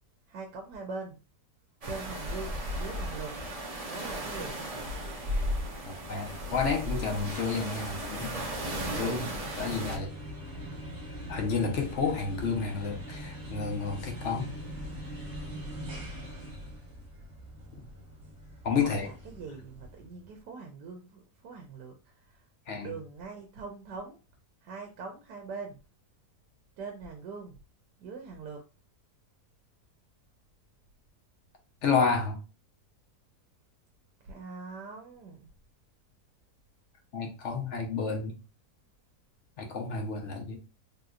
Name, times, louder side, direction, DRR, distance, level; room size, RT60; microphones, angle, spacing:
voice 1, 0.3-1.2 1.9-3.4 3.8-4.6 18.7-22.4 22.8-24.2 24.6-25.8 26.8-27.6 28.0-28.6 34.2-35.5, right 4 dB, 90° right, 1.3 m, -42 dB
sound 1, 1.8-10.0, equal, 35° right, 0.6 m, -35 dB
voice 2, 6.1-8.3 8.9-10.1 11.3-14.5 18.6-19.1 22.7-22.9 31.8-32.4 37.1-38.4 39.6-40.6, left 5 dB, 55° left, 0.9 m, -30 dB
sound 2, 6.2-20.3, equal, 50° right, 1.3 m, -43 dB
3.5 x 2.8 x 2.4 m
omnidirectional pair, 1.7 m